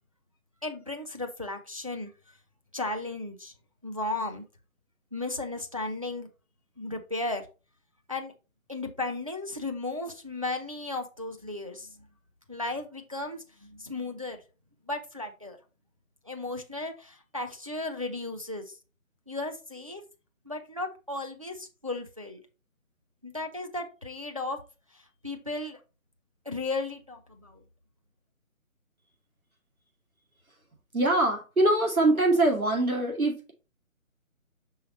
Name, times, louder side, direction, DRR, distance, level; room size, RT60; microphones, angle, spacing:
voice 1, 0.6-2.4 2.7-3.5 3.8-4.4 5.1-6.3 6.8-7.5 8.1-8.3 8.7-12.1 12.5-14.4 14.9-15.6 16.2-18.8 19.3-20.0 20.5-22.4 23.2-24.6 24.9-25.8 26.5-27.6, left 2 dB, 25° right, 0.5 m, -35 dB
voice 2, 30.9-33.5, right 2 dB, 85° right, 2.3 m, -23 dB
5.6 x 4.0 x 4.2 m
figure-of-eight pair, 145°, 41 cm